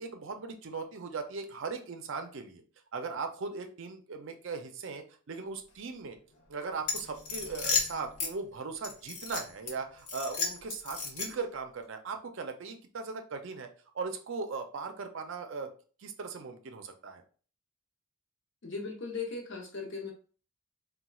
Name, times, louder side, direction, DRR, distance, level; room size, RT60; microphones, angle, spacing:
voice 1, 0.0-2.6 2.9-6.2 6.5-13.7 13.9-15.7 16.0-17.2, right 4 dB, 55° right, 6 dB, 0.4 m, -38 dB
sound 1, 6.8-8.3 8.8-9.7 10.1-11.5, left 4 dB, 85° left, 0.8 m, -33 dB
voice 2, 18.6-20.1, left 4 dB, 55° left, 1 dB, 0.8 m, -38 dB
4.1 x 2.2 x 2.3 m, 0.40 s
head